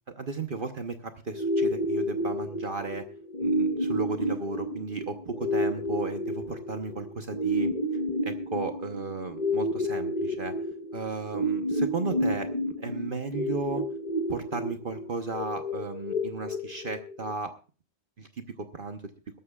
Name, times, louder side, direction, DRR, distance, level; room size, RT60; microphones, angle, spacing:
voice 1, 0.2-3.0 3.4-7.7 8.2-10.5 10.9-13.8 14.3-17.5 18.2-18.3 18.6-19.0, right 4 dB, 50° right, 7 dB, 1.1 m, -34 dB
sound 1, 1.3-17.3, equal, 35° left, 1.3 m, -30 dB
22.0 x 12.5 x 2.4 m, 0.34 s
omnidirectional pair, 1.3 m